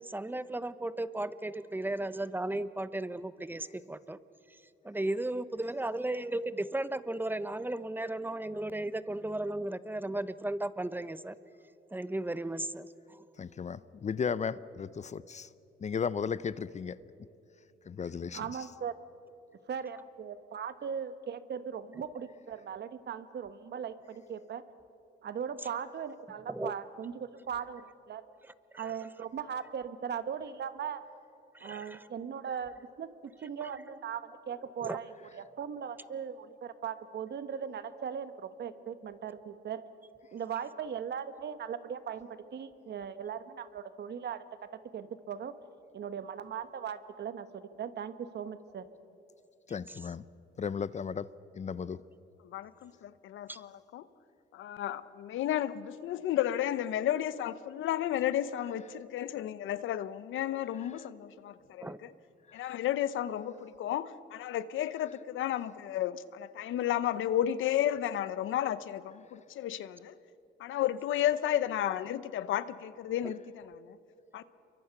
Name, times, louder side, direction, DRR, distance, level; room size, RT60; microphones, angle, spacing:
voice 1, 0.0-4.2 4.8-11.4 11.9-13.2 26.5-26.7 28.7-29.0 31.5-32.0 34.8-35.0 49.9-50.0 53.5-53.6 61.8-62.0 73.2-73.3, right 1 dB, 10° right, 15 dB, 0.8 m, -35 dB
voice 2, 13.4-15.5 15.8-17.0 17.9-18.4 49.7-50.2 50.6-51.3 51.5-52.0 62.5-62.7, left 6 dB, 35° left, 17 dB, 0.6 m, -35 dB
voice 3, 18.3-19.0 19.7-24.6 25.2-28.2 28.8-31.0 31.6-33.1 33.4-35.0 35.3-39.8 40.3-44.4 44.9-45.5 45.9-48.8, right 7 dB, 60° right, 11 dB, 1.3 m, -39 dB
voice 4, 52.4-54.0 54.5-62.1 62.5-70.1 70.6-74.0 74.3-74.4, left 11 dB, 80° left, 15 dB, 0.8 m, -33 dB
28.5 x 23.5 x 6.0 m, 2.8 s
cardioid pair, 90°, 20 cm